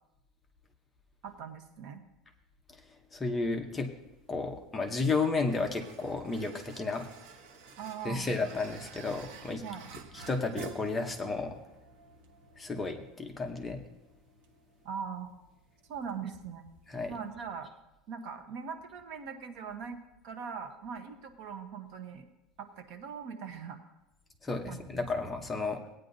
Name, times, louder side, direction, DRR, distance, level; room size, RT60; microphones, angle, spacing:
voice 1, 1.2-2.0 7.8-8.3 9.6-9.9 14.8-15.3 15.9-16.6 17.1-17.7 18.1-20.0 20.2-22.3 22.6-23.9 24.7-25.3, right 6 dB, 55° right, 7 dB, 1.0 m, -41 dB
voice 2, 3.1-3.9 4.3-7.1 8.0-9.6 10.1-11.6 12.6-13.8 16.9-17.1 24.4-25.8, left 3 dB, 10° left, 3 dB, 0.8 m, -32 dB
sound 1, 4.0-17.3, right 5 dB, 85° right, 1.0 m, -52 dB
17.5 x 9.2 x 2.7 m, 0.92 s
cardioid pair, 175°, 0 cm